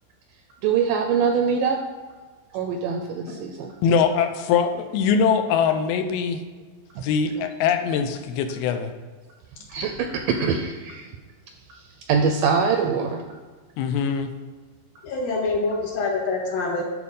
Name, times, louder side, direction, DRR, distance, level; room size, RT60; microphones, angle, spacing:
voice 1, 0.6-1.8 2.5-3.7 7.0-7.1 9.7-11.1 11.7-13.2, right 6 dB, 80° right, 4 dB, 1.9 m, -23 dB
voice 2, 3.8-6.4 7.0-8.9 13.8-14.3, left 6 dB, 90° left, 7 dB, 2.6 m, -22 dB
voice 3, 15.0-16.8, left 3 dB, 70° left, -2 dB, 3.1 m, -25 dB
11.0 x 4.3 x 5.4 m, 1.4 s
omnidirectional pair, 4.4 m